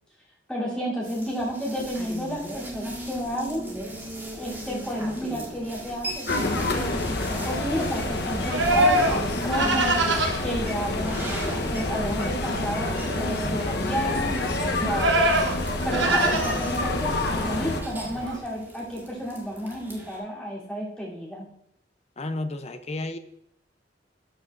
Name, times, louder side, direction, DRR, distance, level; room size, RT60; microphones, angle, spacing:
voice 1, 0.5-3.7 4.3-6.3 6.5-10.0 10.4-14.4 14.8-15.5 15.8-21.4, equal, 5° left, -7 dB, 3.2 m, -31 dB
sound 1, 1.0-20.2, right 1 dB, 10° right, 1.7 m, -40 dB
sound 2, 6.3-17.8, left 2 dB, 65° left, 1.0 m, -28 dB
Livestock farm animals working animals, 7.4-18.4, right 1 dB, 85° right, 1.0 m, -27 dB
voice 2, 13.3-14.3 22.2-23.2, left 2 dB, 35° left, 8 dB, 0.6 m, -34 dB
12.5 x 6.0 x 2.5 m, 0.76 s
head